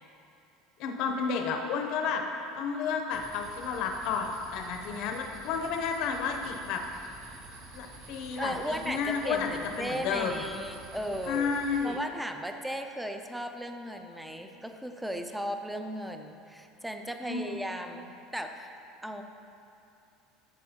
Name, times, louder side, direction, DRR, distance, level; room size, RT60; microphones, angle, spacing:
voice 1, 0.8-2.2 2.5-6.8 7.7-9.5 9.8-10.4 11.3-12.0 17.3-17.6, left 6 dB, 55° left, 3 dB, 0.6 m, -31 dB
sound 1, 3.1-11.9, right 3 dB, 75° right, 1.9 m, -49 dB
voice 2, 8.4-11.5 11.8-18.7 19.0-19.2, equal, 5° right, 6 dB, 0.4 m, -36 dB
11.0 x 7.1 x 2.8 m, 2.7 s
cardioid pair, 150°, 0 cm